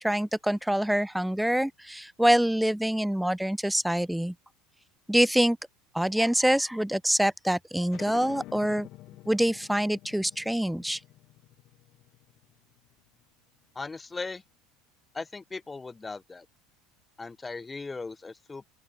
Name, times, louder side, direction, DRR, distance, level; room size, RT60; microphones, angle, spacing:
voice 1, 0.0-4.3 5.1-5.6 5.9-8.9 9.3-11.0, right 1 dB, ahead, 0.5 m, -25 dB
sound 1, 7.9-13.1, left 17 dB, 45° left, 1.4 m, -48 dB
voice 2, 13.7-14.4 15.1-16.5 17.2-18.7, left 3 dB, 15° left, 1.0 m, -38 dB
open air
figure-of-eight pair, 70°, 0 cm